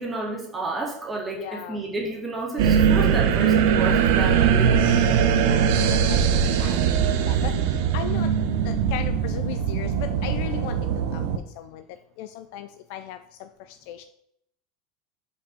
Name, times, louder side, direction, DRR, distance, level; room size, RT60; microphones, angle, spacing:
voice 1, 0.0-5.0 6.6-6.9, right 2 dB, 15° right, -3 dB, 2.0 m, -31 dB
voice 2, 1.3-1.8 5.4-7.0 7.3-7.5 7.9-8.3 8.6-10.8 11.1-11.2 11.6-11.8 12.2-13.2 13.9-14.0, left 11 dB, 65° left, 9 dB, 0.4 m, -36 dB
sound 1, 2.6-11.4, right 7 dB, 70° right, 0.7 m, -21 dB
5.3 x 4.5 x 4.6 m, 0.73 s
supercardioid pair, 115°, 0 cm